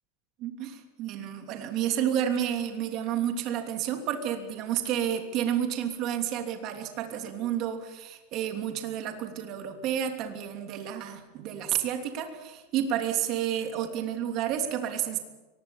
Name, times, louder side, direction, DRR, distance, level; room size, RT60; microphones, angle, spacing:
voice 1, 0.4-15.2, right 10 dB, 35° right, 4 dB, 3.1 m, -30 dB
23.5 x 20.0 x 7.2 m, 1.1 s
supercardioid pair, 165°, 0 cm